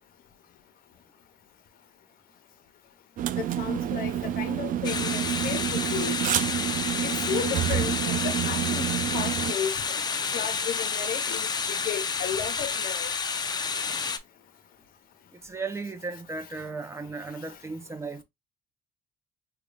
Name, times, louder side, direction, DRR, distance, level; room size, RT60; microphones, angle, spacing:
sound 1, 3.2-9.5, right 11 dB, 55° right, 0.4 m, -28 dB
voice 1, 3.4-6.1 7.0-8.9 9.1-9.8 10.3-13.1, left 9 dB, 60° left, 0.8 m, -34 dB
sound 2, 4.8-14.2, left 5 dB, 25° left, 0.4 m, -30 dB
voice 2, 15.3-18.2, right 3 dB, 15° right, 0.6 m, -36 dB
3.8 x 2.3 x 3.2 m
cardioid pair, 110°, 17 cm